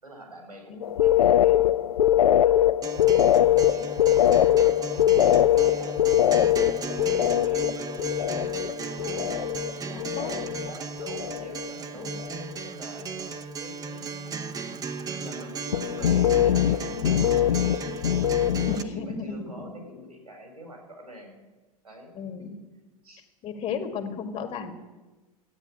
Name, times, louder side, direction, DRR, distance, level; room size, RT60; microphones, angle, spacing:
voice 1, 0.0-2.5 2.9-6.0 6.3-6.6 6.9-10.2 10.7-12.1 12.6-13.1 13.6-14.3 15.2-18.5 18.8-21.4 21.8-22.1 22.4-22.5 23.0-23.2, left 1 dB, 85° right, 2 dB, 4.7 m, -45 dB
sound 1, 0.8-9.7 10.0-10.7 11.0-11.7 12.0-12.4 15.7-18.9, left 11 dB, 70° left, 0.4 m, -22 dB
Acoustic guitar, 2.8-18.8, right 5 dB, 20° right, 0.9 m, -36 dB
voice 2, 9.9-10.4 11.9-12.2 18.7-19.5 22.1-22.6 23.4-24.7, left 5 dB, 35° left, 7 dB, 1.9 m, -34 dB
13.5 x 9.2 x 9.6 m, 1.2 s
figure-of-eight pair, 85°, 19 cm